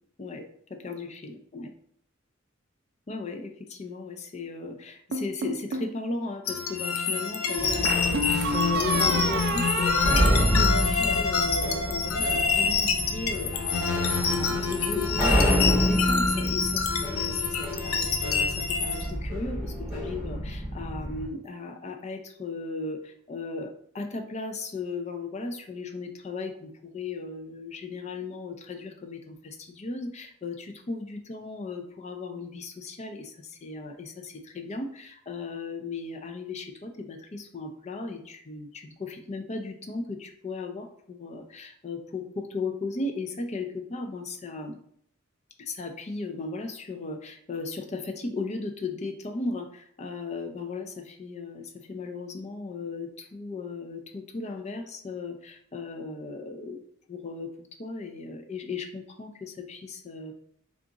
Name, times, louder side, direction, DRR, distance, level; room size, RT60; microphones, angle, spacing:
voice 1, 0.2-1.7 3.1-44.8 45.6-56.8 57.1-60.3, left 3 dB, 30° left, 5 dB, 0.4 m, -36 dB
sound 1, 5.1-5.9 7.8-11.5, right 2 dB, 50° right, 0.4 m, -30 dB
sound 2, 6.5-19.1, left 5 dB, 85° left, 0.5 m, -27 dB
sound 3, 7.6-21.3, equal, 5° right, 1.0 m, -29 dB
3.6 x 2.4 x 3.9 m, 0.66 s
head